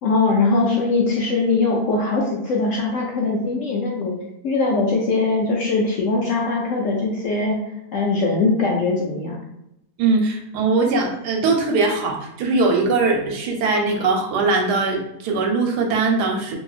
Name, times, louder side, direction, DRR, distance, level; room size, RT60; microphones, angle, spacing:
voice 1, 0.0-4.2 4.4-7.6 7.9-9.4, left 3 dB, 70° left, -2 dB, 0.7 m, -21 dB
voice 2, 10.0-16.6, right 3 dB, 90° right, 2 dB, 1.2 m, -20 dB
2.9 x 2.6 x 2.4 m, 0.82 s
omnidirectional pair, 1.7 m